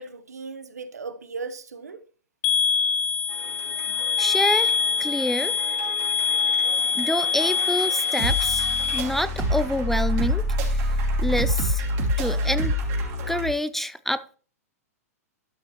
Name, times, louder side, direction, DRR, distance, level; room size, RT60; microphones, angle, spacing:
voice 1, 0.0-2.0, right 4 dB, 90° right, 0.9 m, -37 dB
sound 1, 2.4-9.0, left 5 dB, 50° left, 0.8 m, -24 dB
sound 2, 3.3-13.5, equal, 40° right, 2.8 m, -28 dB
voice 2, 4.2-4.7 5.0-5.5 6.9-8.7 8.9-10.4 10.7-10.9 11.2-11.8 12.2-12.7 13.3-14.4, left 1 dB, 5° left, 0.3 m, -27 dB
12.5 x 6.0 x 2.9 m
hypercardioid pair, 115°, 8 cm